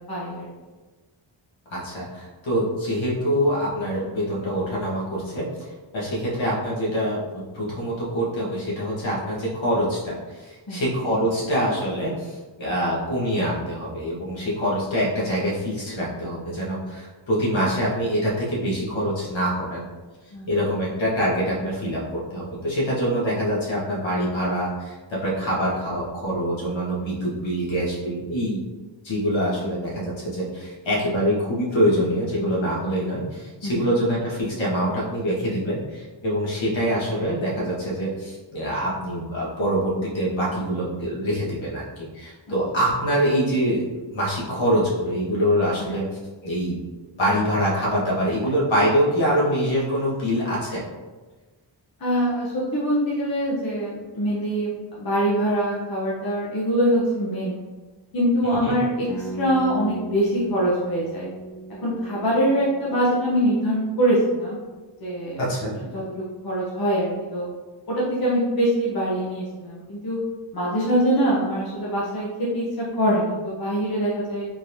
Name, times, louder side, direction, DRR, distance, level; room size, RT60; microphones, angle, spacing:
voice 1, 0.1-0.5 10.7-10.8 20.3-20.5 33.6-33.8 42.5-42.6 45.8-45.9 52.0-57.6 58.1-61.3 61.8-64.6 65.0-65.4 65.9-66.0 66.4-67.5 67.9-70.2 70.5-74.5, equal, 50° left, -6 dB, 0.8 m, -23 dB
voice 2, 1.7-5.7 5.9-19.8 20.5-28.6 29.0-43.8 44.1-46.0 46.4-46.8 47.2-50.8 58.6-58.7 65.4-65.7, equal, 70° left, -6 dB, 1.3 m, -25 dB
sound 1, 59.1-64.8, right 2 dB, ahead, 0.3 m, -38 dB
3.8 x 3.0 x 2.6 m, 1.3 s
wide cardioid pair, 150°, 47 cm